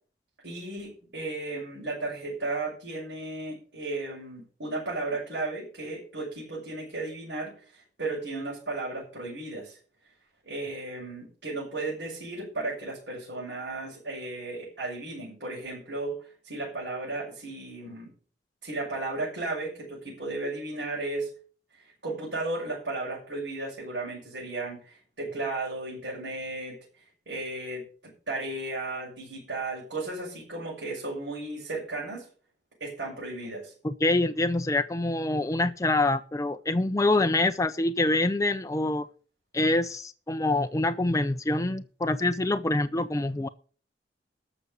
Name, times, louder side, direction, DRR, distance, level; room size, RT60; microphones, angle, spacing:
voice 1, 0.4-9.8 10.4-18.1 18.6-21.3 21.7-32.3 32.8-33.7, right 2 dB, 70° right, -5 dB, 6.2 m, -35 dB
voice 2, 33.8-39.1 39.5-43.5, left 2 dB, 20° left, 9 dB, 0.5 m, -25 dB
13.0 x 6.2 x 6.9 m, 0.41 s
head